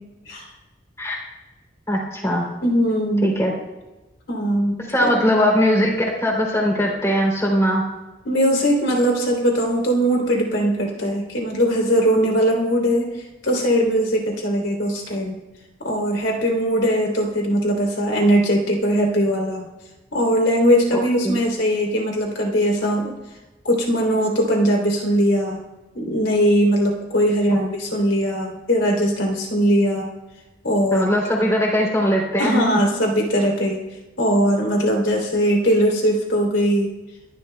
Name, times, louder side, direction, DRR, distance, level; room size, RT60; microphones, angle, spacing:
voice 1, 1.9-2.5 3.2-3.5 4.9-5.9 6.2-7.8 20.9-21.4 30.9-32.6, equal, 15° left, -2 dB, 3.2 m, -20 dB
voice 2, 2.6-3.3 4.3-5.2 8.2-13.1 13.4-15.3 15.8-19.6 20.1-23.1 23.6-25.6 25.9-30.1 30.6-31.1 32.4-33.8 34.2-36.9, equal, 90° left, -1 dB, 3.2 m, -20 dB
30.0 x 12.0 x 2.3 m, 1.1 s
head